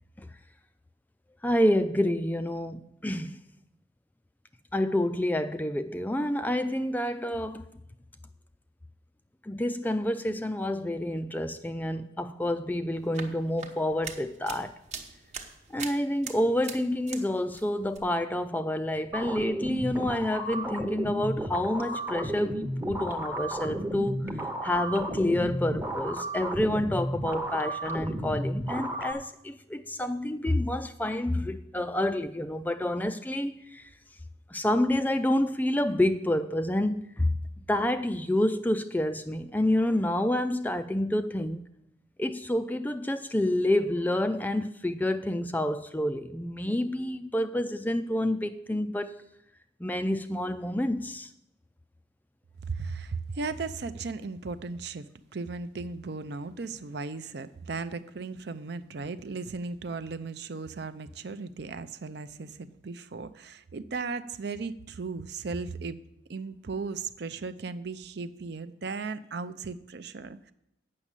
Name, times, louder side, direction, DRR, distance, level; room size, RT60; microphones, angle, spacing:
voice 1, 1.4-3.4 4.7-7.7 9.4-14.8 15.7-24.3 24.6-33.9 34.5-41.7 42.2-49.2 49.8-51.3, left 1 dB, 10° left, 0.3 m, -28 dB
sound 1, 12.9-17.3 17.5-18.0, right 6 dB, 35° right, 1.0 m, -42 dB
sound 2, 19.1-29.1, right 1 dB, 10° right, 0.7 m, -33 dB
voice 2, 52.6-66.0 66.3-70.5, right 4 dB, 55° right, 0.5 m, -36 dB
8.6 x 6.2 x 8.2 m
head